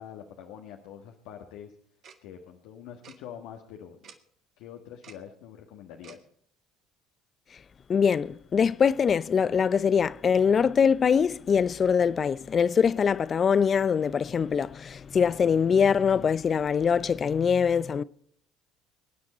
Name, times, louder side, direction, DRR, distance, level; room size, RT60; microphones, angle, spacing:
voice 1, 0.0-1.7 2.2-4.1 4.6-6.2, left 9 dB, 70° left, 1.5 m, -45 dB
Tick-tock, 2.0-2.2 3.0-3.2 4.0-4.2 5.0-5.2 6.0-6.2, right 7 dB, 55° right, 1.8 m, -49 dB
voice 2, 7.9-18.0, left 6 dB, 40° left, 0.7 m, -23 dB
24.5 x 9.6 x 4.3 m
hypercardioid pair, 65°, 0 cm